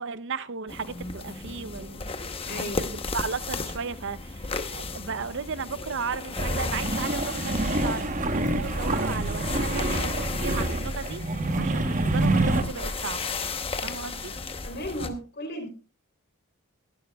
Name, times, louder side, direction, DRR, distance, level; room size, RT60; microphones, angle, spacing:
voice 1, 0.0-2.1 2.5-11.2 11.6-13.3 13.8-14.3, right 5 dB, 55° right, 0.6 m, -35 dB
sound 1, 0.7-15.1, left 4 dB, 25° left, 0.9 m, -35 dB
voice 2, 2.5-2.9 14.6-15.7, equal, 50° left, 3.4 m, -35 dB
sound 2, 6.4-12.6, right 2 dB, 35° right, 1.0 m, -27 dB
21.5 x 11.5 x 2.3 m
head